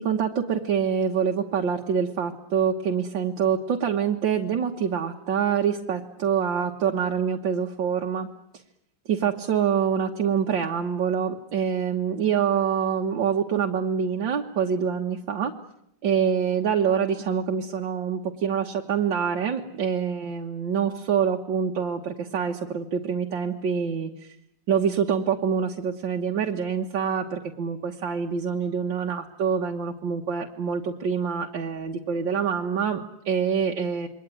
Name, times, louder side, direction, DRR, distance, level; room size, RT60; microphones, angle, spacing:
voice 1, 0.0-8.3 9.1-15.5 16.0-24.4 24.7-34.1, right 7 dB, 80° right, 1 dB, 2.1 m, -26 dB
28.0 x 22.5 x 9.2 m, 0.77 s
omnidirectional pair, 2.0 m